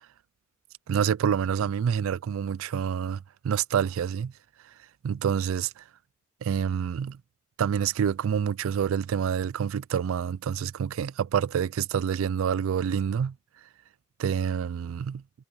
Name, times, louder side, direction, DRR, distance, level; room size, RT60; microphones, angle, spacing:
voice 1, 0.9-4.3 5.0-5.8 6.4-7.2 7.6-13.3 14.2-15.2, right 8 dB, 75° right, 0.3 m, -27 dB
head